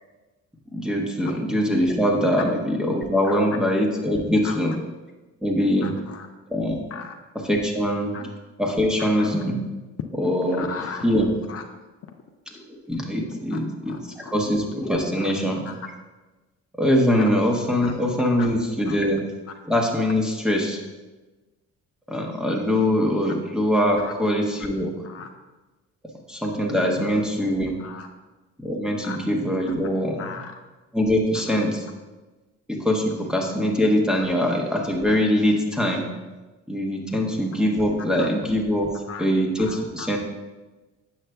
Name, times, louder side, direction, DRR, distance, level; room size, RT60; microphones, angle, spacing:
voice 1, 0.7-4.7 5.4-5.9 6.5-6.8 7.4-8.3 8.6-9.6 10.2-10.7 11.0-11.3 12.5-15.6 16.8-19.2 19.6-20.8 22.1-24.9 26.3-27.8 28.6-30.4 30.9-31.8 32.7-36.1 36.7-38.9 39.2-40.2, equal, ahead, 0 dB, 0.9 m, -23 dB
voice 2, 5.8-6.3 6.9-7.2 8.1-8.2 9.2-9.3 10.5-11.0 11.5-11.7 13.5-14.0 15.2-15.3 15.7-15.8 17.8-18.0 18.4-18.5 18.9-19.0 24.0-24.1 25.0-25.3 27.8-28.1 29.0-29.2 29.7-29.8 30.2-30.5 31.5-31.6 37.1-37.2 38.2-38.3 39.1-39.3 39.6-40.1, left 6 dB, 50° left, 4 dB, 0.5 m, -37 dB
7.5 x 5.5 x 2.3 m, 1.2 s
cardioid pair, 90°, 30 cm